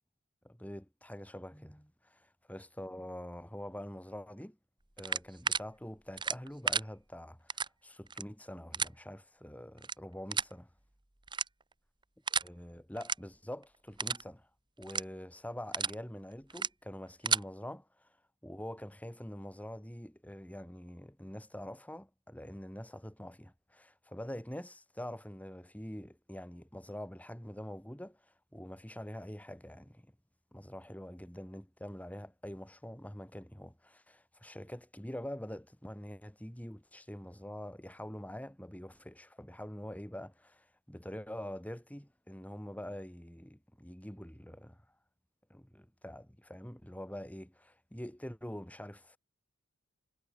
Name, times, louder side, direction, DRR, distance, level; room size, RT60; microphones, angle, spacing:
voice 1, 0.4-4.6 5.0-7.5 7.8-10.7 12.4-14.5 14.8-17.9 18.4-28.2 28.5-30.1 30.5-44.8 45.5-49.2, equal, 5° left, 3.5 m, -45 dB
sound 1, 5.0-5.6 6.2-6.8 7.5-7.7 8.1-8.2 8.7-8.9 9.8-9.9 10.3-10.5 11.3-11.7 12.3-12.5 13.0-13.1 13.5-13.6 14.0-14.2 14.8-15.0 15.5-15.9 16.5-16.7 17.1-17.4, right 5 dB, 20° right, 1.6 m, -32 dB
head